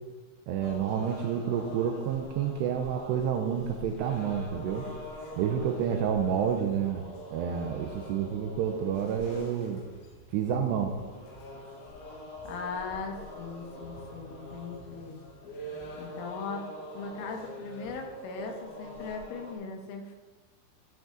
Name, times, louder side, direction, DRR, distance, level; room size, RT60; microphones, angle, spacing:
voice 1, 0.5-4.9 5.4-7.0 7.3-9.8 10.3-10.9, right 8 dB, 80° right, 4 dB, 2.5 m, -29 dB
sound 1, 0.6-19.5, equal, 75° left, 4.2 m, -44 dB
voice 2, 12.5-15.2 16.0-16.7 16.9-20.2, left 4 dB, 90° left, 3 dB, 3.9 m, -39 dB
15.0 x 7.5 x 3.9 m, 1.3 s
omnidirectional pair, 5.6 m